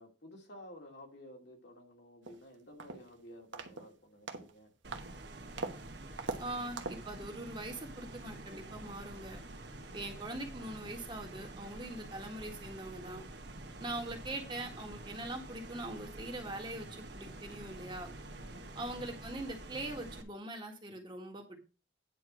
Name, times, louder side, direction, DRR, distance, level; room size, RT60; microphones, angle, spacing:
voice 1, 0.0-4.7 9.7-10.0 13.7-13.9 18.2-18.7, left 1 dB, 65° left, 1 dB, 2.5 m, -54 dB
sound 1, 2.3-2.4 2.8-3.1 3.5-3.9 4.3-4.5 4.9-5.1 5.6-5.8 6.2-6.4 6.8-7.1, right 3 dB, 75° right, 1.2 m, -40 dB
sound 2, 4.8-20.2, right 2 dB, 60° right, 1.4 m, -48 dB
voice 2, 6.4-9.4 9.9-13.2 13.8-18.1 18.8-21.6, right 1 dB, 25° right, 2 dB, 1.7 m, -42 dB
9.8 x 4.6 x 6.2 m, 0.32 s
head